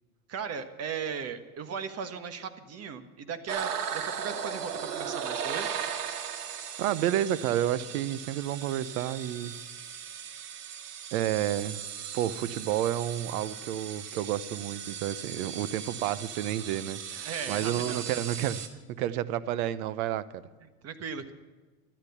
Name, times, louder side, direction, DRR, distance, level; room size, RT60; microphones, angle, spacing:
voice 1, 0.3-5.7 17.2-18.1 20.6-21.3, right 6 dB, 30° right, 1.5 m, -37 dB
sound 1, 3.5-18.7, right 8 dB, 90° right, 2.0 m, -38 dB
voice 2, 6.8-9.6 11.1-11.8 12.1-20.4, right 12 dB, 65° right, 1.0 m, -30 dB
13.5 x 13.0 x 7.1 m
supercardioid pair, 115°, 46 cm